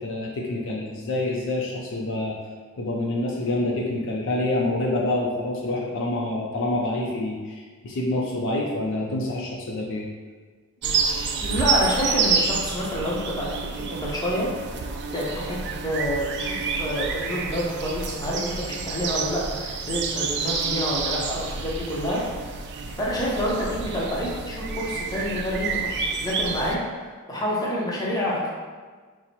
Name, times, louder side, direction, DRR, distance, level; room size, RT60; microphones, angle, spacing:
voice 1, 0.0-2.4 2.8-10.1, left 2 dB, 60° left, -1 dB, 0.5 m, -27 dB
sound 1, 10.8-26.8, right 5 dB, 50° right, 0.3 m, -29 dB
voice 2, 11.4-13.5 13.9-14.5 15.1-15.6 15.8-22.2 23.0-25.8 26.1-28.5, equal, 15° left, -5 dB, 0.7 m, -28 dB
4.2 x 2.1 x 4.3 m, 1.5 s
head